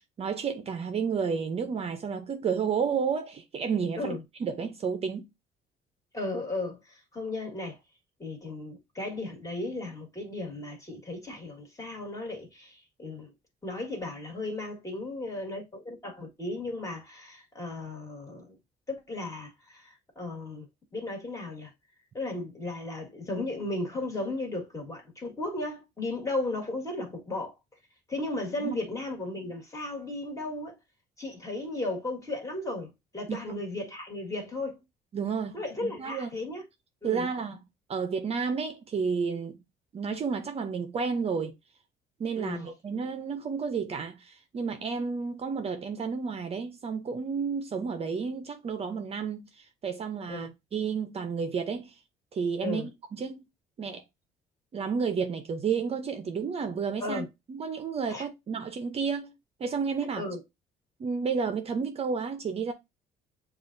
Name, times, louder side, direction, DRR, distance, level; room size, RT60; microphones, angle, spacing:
voice 1, 0.0-5.3 28.6-28.8 33.3-33.6 35.1-35.6 35.8-36.3 37.0-37.6 37.9-39.6 39.9-41.5 42.2-51.9 52.3-53.4 53.8-54.0 54.7-59.3 59.6-60.2 61.0-62.7, right 5 dB, 35° right, 0.6 m, -31 dB
voice 2, 6.1-7.8 8.2-13.3 13.6-18.6 18.9-20.7 20.9-21.7 22.1-27.5 28.1-30.8 31.2-34.8 35.5-36.6 37.0-37.3 42.4-42.7 50.3-50.5 52.6-52.9 57.0-57.3 58.1-58.2 60.2-60.4, left 2 dB, 20° left, 1.7 m, -35 dB
6.8 x 2.4 x 2.6 m
cardioid pair, 110°, 17 cm